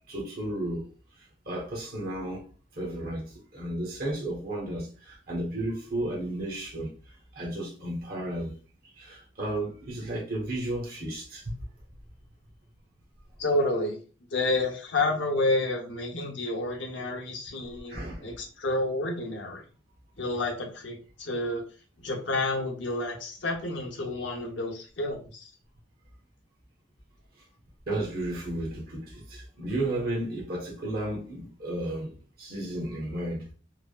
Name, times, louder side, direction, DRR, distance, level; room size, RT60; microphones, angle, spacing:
voice 1, 0.1-0.9 1.5-2.4 2.8-3.2 3.5-6.9 7.3-8.5 9.0-11.5 17.9-18.4 27.9-33.4, right 1 dB, 50° right, 0.9 m, -33 dB
voice 2, 13.4-14.0 14.3-19.6 20.2-21.6 22.0-25.4, left 2 dB, 70° left, 0.7 m, -29 dB
3.3 x 2.0 x 2.2 m
head